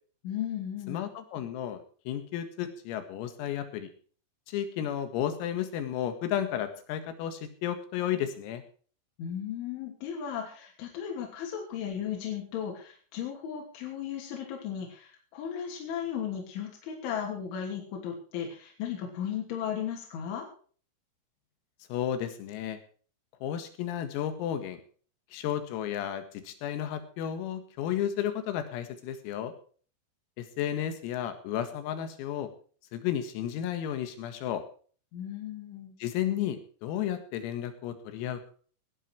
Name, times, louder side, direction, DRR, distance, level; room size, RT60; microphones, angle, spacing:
voice 1, 0.2-1.1 9.2-20.5 35.1-36.0, left 9 dB, 70° left, 0 dB, 5.2 m, -36 dB
voice 2, 0.9-3.9 4.5-8.6 21.9-22.8 23.4-24.8 25.3-29.5 30.4-32.5 32.9-34.6 36.0-38.5, left 10 dB, 90° left, 9 dB, 4.5 m, -33 dB
18.5 x 11.5 x 4.6 m, 0.43 s
omnidirectional pair, 5.9 m